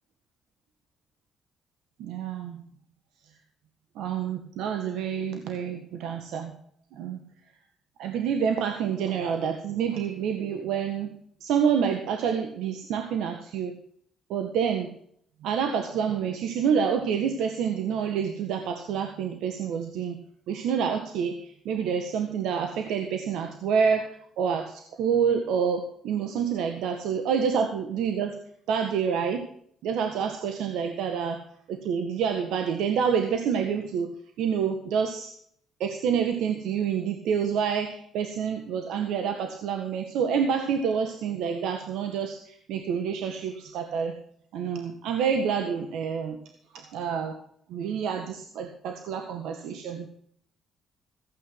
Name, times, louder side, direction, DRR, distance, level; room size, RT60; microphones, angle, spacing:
voice 1, 2.0-2.6 3.9-6.5 6.9-7.2 8.0-11.1 11.4-13.7 14.3-14.9 15.4-20.2 20.5-24.1 24.4-28.4 28.7-29.5 29.8-31.4 31.7-34.1 34.4-35.3 35.8-44.1 44.5-46.4 46.9-47.3 47.7-50.1, right 7 dB, 90° right, 5 dB, 1.7 m, -28 dB
15.5 x 8.7 x 5.9 m, 0.64 s
cardioid pair, 90°, 0 cm